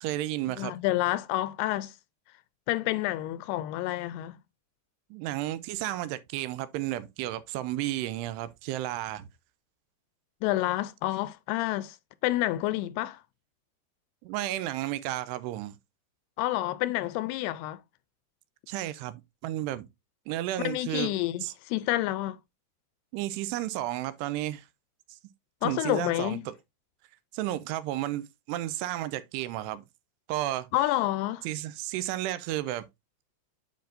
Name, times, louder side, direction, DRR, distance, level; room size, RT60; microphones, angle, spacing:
voice 1, 0.0-0.7 5.1-9.3 14.2-15.8 18.7-19.9 20.3-21.1 21.4-21.5 23.1-24.7 25.6-26.5 27.3-29.9 30.3-30.7 31.4-32.9, right 14 dB, 85° right, 2.7 m, -32 dB
voice 2, 0.6-2.0 2.7-4.4 10.4-12.0 12.2-13.2 16.4-17.8 20.6-22.4 25.6-26.4 30.7-31.5, left 16 dB, 85° left, 2.5 m, -29 dB
9.1 x 5.1 x 2.6 m
omnidirectional pair, 4.8 m